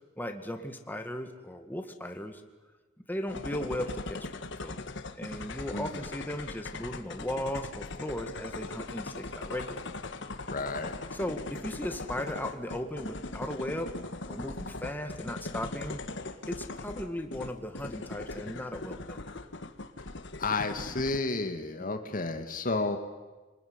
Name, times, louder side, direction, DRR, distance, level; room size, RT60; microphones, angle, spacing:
voice 1, 0.2-2.4 3.1-4.3 4.6-4.8 5.2-9.8 11.1-13.9 14.3-16.0 16.5-19.3 21.8-21.9, left 1 dB, 10° left, 5 dB, 2.0 m, -37 dB
sound 1, 3.3-21.2, left 2 dB, 65° left, 1.6 m, -40 dB
voice 2, 5.7-6.1 10.5-10.9 20.4-23.0, left 3 dB, 45° left, 5 dB, 2.0 m, -31 dB
28.0 x 20.5 x 9.7 m, 1.2 s
head